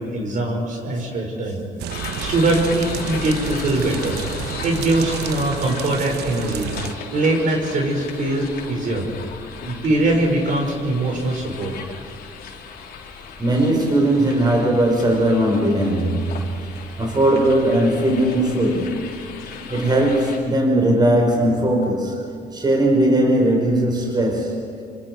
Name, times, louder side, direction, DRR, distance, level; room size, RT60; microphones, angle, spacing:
voice 1, 0.0-1.6 2.2-4.2 4.6-6.7 7.1-9.0 9.6-11.7, right 2 dB, 50° right, 1 dB, 5.9 m, -22 dB
sound 1, 1.8-6.9, right 10 dB, 75° right, 1.1 m, -31 dB
sound 2, 1.9-20.4, left 6 dB, 70° left, 4.1 m, -36 dB
voice 2, 13.4-16.5 17.0-19.3 19.7-22.2 22.5-24.7, right 1 dB, 25° right, 0 dB, 4.9 m, -19 dB
27.5 x 25.5 x 4.8 m, 2.5 s
cardioid pair, 110°, 17 cm